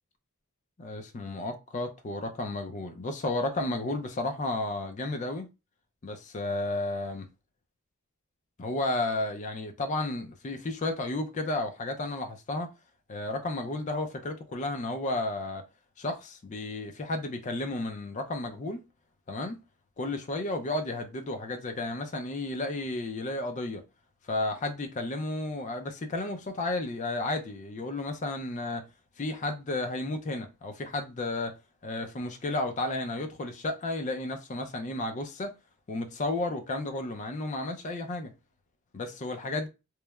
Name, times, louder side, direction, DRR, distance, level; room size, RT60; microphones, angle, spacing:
voice 1, 0.8-5.5 6.0-7.3 8.6-12.7 13.1-15.6 16.0-18.8 19.3-19.6 20.0-23.8 24.3-28.9 29.2-31.6 31.8-35.5 35.9-38.3 38.9-39.7, left 2 dB, 35° left, 0.4 m, -32 dB
3.0 x 2.0 x 2.2 m
head